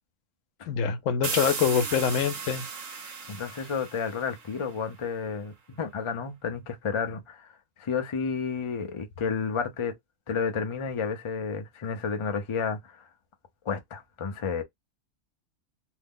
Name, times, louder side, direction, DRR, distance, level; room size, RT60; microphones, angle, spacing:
voice 1, 0.7-2.7, left 7 dB, 80° left, 1.0 m, -25 dB
sound 1, 1.2-4.8, right 6 dB, 85° right, 1.1 m, -36 dB
voice 2, 3.3-7.5 7.8-9.9 10.3-13.0 13.7-14.6, left 5 dB, 35° left, 0.5 m, -31 dB
2.7 x 2.0 x 3.6 m
omnidirectional pair, 1.3 m